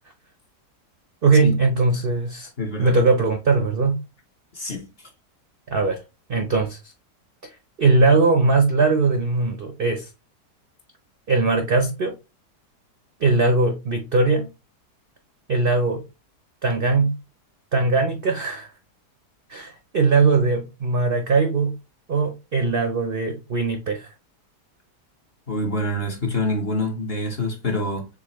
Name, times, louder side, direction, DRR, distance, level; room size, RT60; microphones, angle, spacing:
voice 1, 1.2-2.5 2.8-4.0 5.7-6.0 6.3-6.8 7.4-7.5 7.8-10.1 11.3-12.1 13.2-14.5 15.5-16.0 16.6-17.2 17.7-18.7 19.5-21.8 22.1-24.1, right 3 dB, 60° right, 0.6 m, -20 dB
voice 2, 2.6-3.0 4.5-5.1 25.5-28.1, left 1 dB, 45° left, 1.0 m, -26 dB
6.7 x 2.4 x 2.9 m
omnidirectional pair, 1.8 m